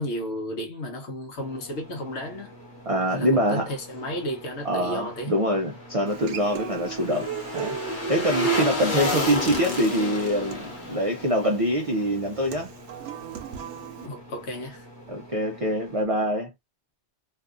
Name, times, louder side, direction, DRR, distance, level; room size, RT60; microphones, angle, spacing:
voice 1, 0.0-2.5 3.1-5.3 14.0-14.8, equal, 75° left, 1.1 m, -33 dB
sound 1, 1.4-16.1, equal, 15° right, 1.2 m, -47 dB
voice 2, 2.9-3.7 4.6-7.8 8.1-12.7 15.1-16.5, equal, 50° right, 0.4 m, -25 dB
sound 2, 5.7-12.9 13.2-13.3, left 1 dB, 50° left, 1.0 m, -31 dB
Human voice / Acoustic guitar, 6.1-14.1, right 9 dB, 80° right, 0.9 m, -37 dB
2.6 x 2.3 x 2.4 m
omnidirectional pair, 1.2 m